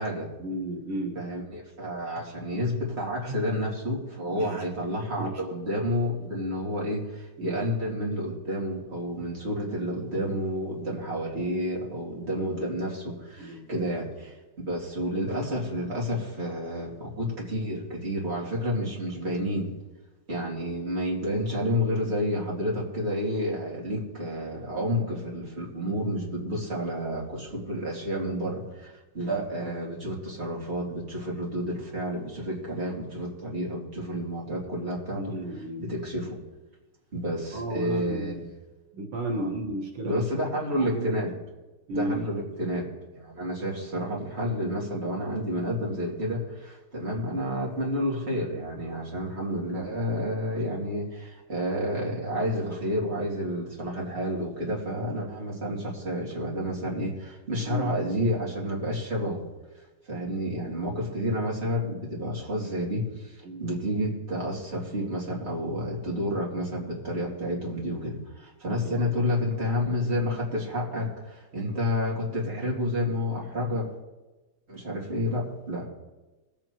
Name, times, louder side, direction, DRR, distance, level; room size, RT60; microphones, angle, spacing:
voice 1, 0.4-1.2 2.1-2.2 3.2-3.4 4.4-4.7 5.2-5.5 7.4-7.7 13.4-13.8 29.6-29.7 35.1-35.9 37.5-38.5 38.9-40.2 40.8-41.2 41.9-42.3 57.6-57.9 63.4-63.7 68.7-69.2, right 1 dB, 85° right, 1 dB, 2.4 m, -34 dB
voice 2, 1.1-14.3 14.7-19.7 20.3-35.3 35.8-36.4 37.1-38.4 39.3-39.5 40.0-41.3 41.9-59.4 60.1-73.9 74.7-75.9, equal, 30° right, -4 dB, 2.9 m, -30 dB
20.5 x 8.8 x 3.0 m, 1.1 s
omnidirectional pair, 2.3 m